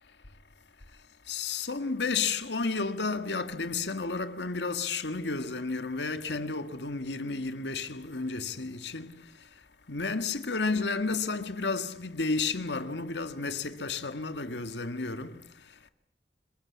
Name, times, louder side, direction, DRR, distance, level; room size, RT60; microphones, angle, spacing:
voice 1, 0.9-15.9, left 4 dB, 80° left, 1.8 m, -32 dB
28.0 x 21.0 x 8.6 m
head